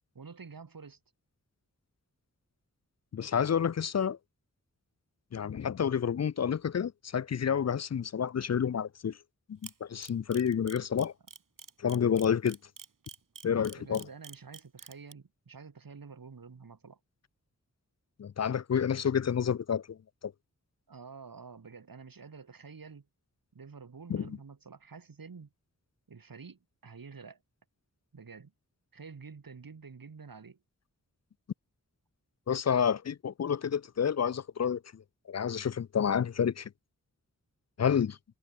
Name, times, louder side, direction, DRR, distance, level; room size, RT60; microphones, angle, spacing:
voice 1, 0.1-1.0 13.7-17.0 20.9-23.1 23.5-25.5 26.1-27.4 28.1-28.5 28.9-30.6, right 5 dB, 90° right, 3.3 m, -49 dB
voice 2, 3.1-4.2 5.3-9.2 9.5-11.1 11.8-12.6 13.4-14.1 18.2-20.0 20.2-20.3 24.1-24.4 32.5-35.0 35.3-36.7 37.8-38.2, left 7 dB, 50° left, 0.5 m, -29 dB
Camera, 9.6-15.1, right 5 dB, 70° right, 1.7 m, -47 dB
wide cardioid pair, 75°, 33 cm